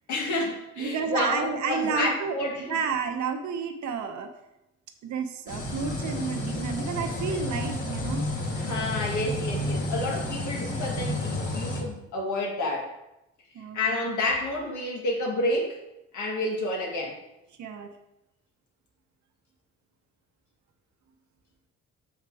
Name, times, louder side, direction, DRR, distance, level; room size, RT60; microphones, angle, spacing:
voice 1, 0.1-2.8 8.6-12.9 13.7-15.8 16.1-17.2, left 2 dB, 75° left, 0 dB, 1.9 m, -29 dB
voice 2, 0.8-2.4 2.7-4.3 5.0-8.3 13.5-13.8 17.6-17.9, right 6 dB, 70° right, 5 dB, 1.0 m, -31 dB
sound 1, 5.5-11.8, left 1 dB, 50° left, 1.7 m, -31 dB
6.5 x 4.9 x 4.8 m, 0.90 s
cardioid pair, 90°, 30 cm